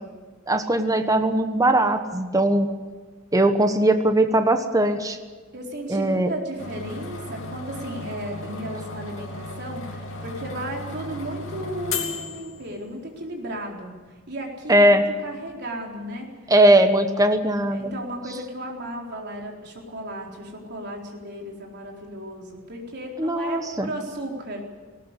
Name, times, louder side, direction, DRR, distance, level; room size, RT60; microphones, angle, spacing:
voice 1, 0.5-2.7 3.3-5.2 5.9-6.3 14.7-15.0 16.5-17.9 23.2-23.9, right 1 dB, 15° right, 7 dB, 1.1 m, -19 dB
voice 2, 5.5-13.9 14.3-16.3 17.7-24.6, right 1 dB, 55° right, 0 dB, 4.2 m, -34 dB
sound 1, 6.6-13.1, left 3 dB, 70° left, 3.0 m, -35 dB
19.0 x 18.0 x 8.3 m, 1.4 s
head